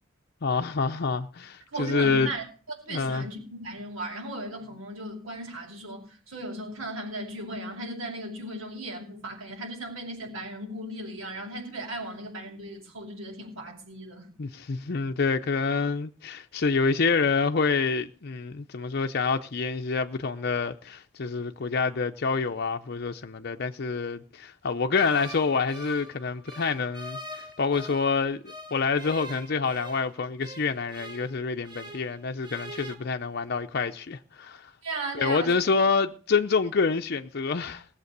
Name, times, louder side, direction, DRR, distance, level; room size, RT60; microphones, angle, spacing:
voice 1, 0.4-2.3 2.9-3.3 14.4-34.7 35.1-37.9, left 4 dB, 50° left, 0.6 m, -27 dB
voice 2, 1.7-2.4 2.8-14.3 34.8-35.5, right 1 dB, 90° right, 6.0 m, -36 dB
sound 1, 24.9-28.1 28.5-32.1 32.4-32.9, right 1 dB, 20° right, 1.8 m, -43 dB
18.5 x 7.4 x 6.7 m
head